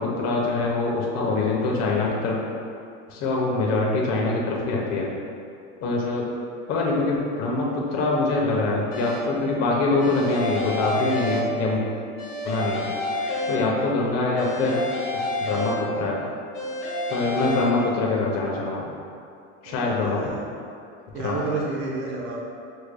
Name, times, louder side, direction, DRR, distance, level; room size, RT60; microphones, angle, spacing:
voice 1, 0.0-2.4 3.1-5.1 5.8-6.3 6.7-11.8 12.4-12.9 13.5-14.8 15.4-16.2 17.1-18.9 19.6-20.2 21.1-21.4, left 3 dB, 50° left, -3 dB, 1.0 m, -24 dB
sound 1, 8.9-9.5 10.0-11.9 12.2-14.0 14.4-16.2 16.5-17.6, left 1 dB, 25° left, 1.2 m, -29 dB
voice 2, 19.6-20.4 21.1-22.4, right 3 dB, 65° right, -3 dB, 0.8 m, -30 dB
6.6 x 3.3 x 2.2 m, 2.5 s
supercardioid pair, 125°, 35 cm